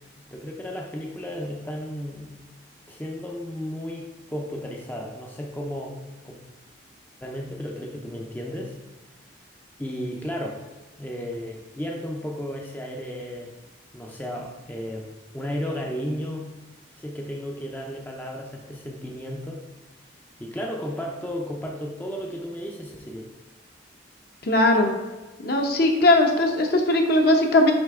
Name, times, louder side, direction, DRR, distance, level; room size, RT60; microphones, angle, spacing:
voice 1, 0.3-2.5 2.9-6.0 6.2-6.4 7.2-8.8 9.8-10.6 11.0-13.5 13.9-16.5 17.0-19.6 20.4-23.3, equal, 10° left, -1 dB, 0.5 m, -34 dB
voice 2, 24.5-24.9 25.4-27.7, left 2 dB, 50° left, 3 dB, 0.9 m, -19 dB
6.4 x 5.0 x 3.6 m, 1.2 s
head